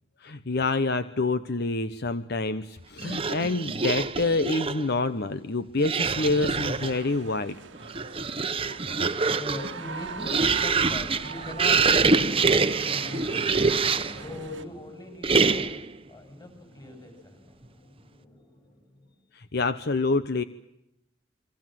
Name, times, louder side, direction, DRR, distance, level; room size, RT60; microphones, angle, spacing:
voice 1, 0.2-7.6 19.3-20.4, left 3 dB, 60° left, 12 dB, 1.0 m, -27 dB
sound 1, 3.0-4.9 5.8-7.0 7.7-14.2 15.2-15.9, right 4 dB, 30° right, 1.1 m, -25 dB
sound 2, 6.2-14.6, right 5 dB, 80° right, 1.5 m, -43 dB
voice 2, 8.6-18.8, left 1 dB, 25° left, 6 dB, 7.2 m, -41 dB
28.0 x 24.0 x 7.7 m, 0.87 s
head